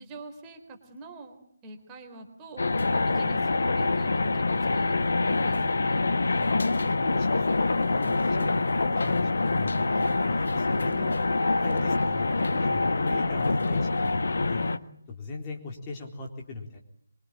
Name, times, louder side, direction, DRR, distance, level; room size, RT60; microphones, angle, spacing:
voice 1, 0.0-6.1, right 2 dB, 15° right, 4 dB, 3.7 m, -45 dB
sound 1, 2.6-14.8, left 3 dB, 55° left, 1.5 m, -25 dB
voice 2, 6.8-8.5 9.0-11.2 11.6-14.7 15.1-16.8, left 3 dB, 20° left, 0 dB, 4.0 m, -39 dB
25.0 x 24.5 x 9.0 m, 0.68 s
figure-of-eight pair, 150°, 0 cm